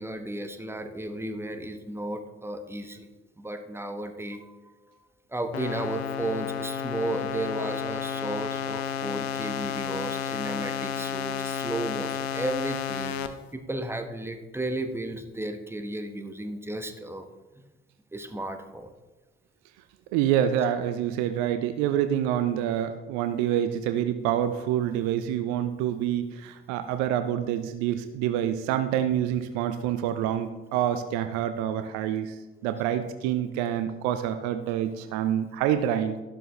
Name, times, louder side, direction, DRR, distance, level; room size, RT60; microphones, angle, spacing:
voice 1, 0.0-3.1 3.4-4.5 5.3-17.3 18.1-18.9, right 1 dB, 10° right, 7 dB, 1.2 m, -34 dB
sound 1, 5.5-13.3, left 8 dB, 75° left, 0.8 m, -32 dB
voice 2, 20.1-32.4 32.6-36.2, right 10 dB, 60° right, 10 dB, 0.7 m, -27 dB
13.0 x 12.0 x 3.2 m, 1.2 s
figure-of-eight pair, 45°, 32 cm